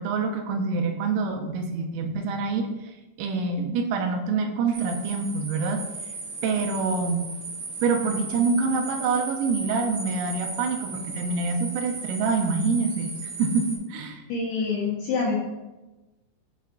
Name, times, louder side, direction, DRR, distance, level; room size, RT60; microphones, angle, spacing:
voice 1, 0.0-5.9 6.4-7.2 7.8-14.2, right 4 dB, 85° right, 3 dB, 3.3 m, -26 dB
sound 1, 4.7-13.8, right 3 dB, 70° right, 2.0 m, -36 dB
voice 2, 14.3-15.4, left 4 dB, 80° left, -4 dB, 2.4 m, -26 dB
7.6 x 4.1 x 3.6 m, 1.1 s
omnidirectional pair, 5.8 m